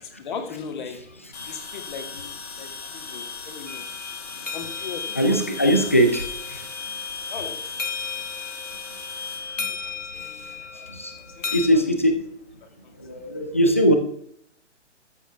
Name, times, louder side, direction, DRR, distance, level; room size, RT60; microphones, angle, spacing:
voice 1, 0.2-1.0 1.5-2.3 2.6-3.9 4.4-5.4 5.8-5.9 7.3-7.6 9.6-10.5 10.8-10.9 11.4-11.8, left 6 dB, 40° left, 5 dB, 2.1 m, -38 dB
sound 1, 1.3-10.6, left 5 dB, 55° left, 4.2 m, -36 dB
sound 2, 3.7-11.7, left 6 dB, 85° left, 1.2 m, -36 dB
voice 2, 5.2-6.7 9.6-9.7 10.1-10.3 10.7-11.1 11.5-12.3 13.0-14.0, equal, 10° left, 6 dB, 0.4 m, -21 dB
13.0 x 7.7 x 3.5 m, 0.66 s
figure-of-eight pair, 130°, 37 cm